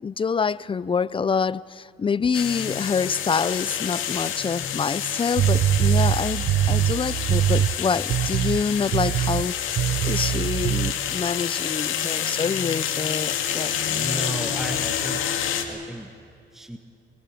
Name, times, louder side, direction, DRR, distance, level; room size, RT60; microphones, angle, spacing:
voice 1, 0.0-13.7, left 5 dB, 25° left, 0.5 m, -26 dB
sound 1, 2.3-15.6, left 9 dB, 85° left, 2.3 m, -28 dB
sound 2, 5.4-7.8 8.1-8.6 8.9-9.5 9.8-10.9, right 11 dB, 65° right, 0.6 m, -22 dB
voice 2, 13.9-15.3 15.6-16.1 16.5-16.8, right 1 dB, ahead, 1.1 m, -34 dB
25.0 x 21.5 x 8.5 m
cardioid pair, 90°, 20 cm